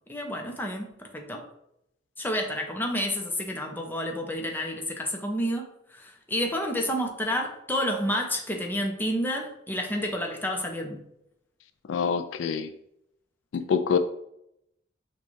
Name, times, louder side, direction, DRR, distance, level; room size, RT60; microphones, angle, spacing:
voice 1, 0.1-1.4 2.2-11.0, equal, 10° left, 1 dB, 0.6 m, -30 dB
voice 2, 11.9-12.7 13.5-14.0, left 6 dB, 85° left, 10 dB, 0.3 m, -25 dB
6.2 x 2.3 x 3.1 m, 0.77 s
head